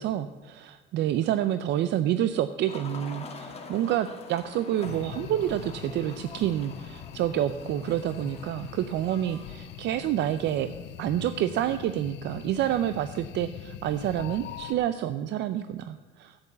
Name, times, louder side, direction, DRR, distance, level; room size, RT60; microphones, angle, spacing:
voice 1, 0.0-10.7 11.0-16.5, right 11 dB, 70° right, 11 dB, 0.5 m, -28 dB
sound 1, 2.7-12.4, left 4 dB, 35° left, 1.5 m, -46 dB
sound 2, 4.8-14.7, left 10 dB, 70° left, 0.7 m, -42 dB
10.5 x 8.0 x 8.3 m, 1.4 s
cardioid pair, 140°, 19 cm